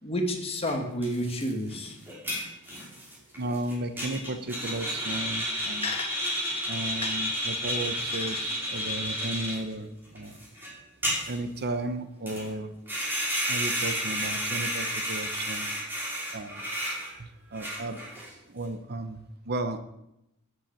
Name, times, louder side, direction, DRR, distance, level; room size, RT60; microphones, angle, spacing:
voice 1, 0.0-1.9 5.8-6.2 7.0-7.2 8.0-8.4, left 1 dB, 25° left, 4 dB, 2.2 m, -31 dB
sound 1, 0.6-0.7 1.0-9.6 10.0-10.7 11.0-11.6 12.3-12.5 12.9-17.1 17.5-18.3, equal, 10° right, 5.7 m, -32 dB
voice 2, 3.4-5.9 6.7-10.4 11.3-12.7 13.5-15.7 16.3-16.7 17.2-18.0 18.5-19.8, right 2 dB, 50° right, 10 dB, 1.1 m, -34 dB
13.0 x 8.2 x 9.0 m, 0.86 s
head